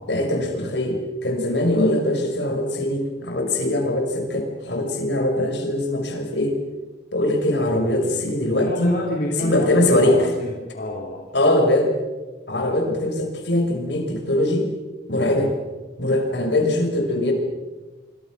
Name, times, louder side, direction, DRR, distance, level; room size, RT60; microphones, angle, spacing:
voice 1, 0.1-6.6 7.1-8.9 9.4-10.2 11.3-11.9 12.5-14.7 15.1-15.5 16.0-17.3, left 1 dB, 70° left, 3 dB, 5.6 m, -21 dB
voice 2, 8.5-11.2, left 1 dB, 50° left, -2 dB, 3.4 m, -28 dB
27.0 x 25.0 x 6.2 m, 1.2 s
head